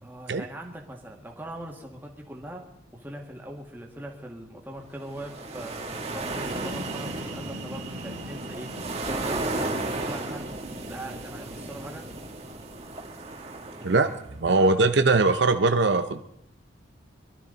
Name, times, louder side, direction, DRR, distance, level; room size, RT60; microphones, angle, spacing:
voice 1, 0.0-2.6 2.9-8.7 9.0-10.5 10.8-12.1 13.7-14.8, right 1 dB, 10° right, 0 dB, 2.0 m, -41 dB
sound 1, 5.0-14.3, right 2 dB, 30° right, 1.6 m, -34 dB
sound 2, 6.2-13.7, right 1 dB, 85° right, 2.3 m, -42 dB
voice 2, 14.4-16.2, right 3 dB, 65° right, 9 dB, 0.7 m, -21 dB
23.5 x 12.5 x 4.0 m, 0.75 s
head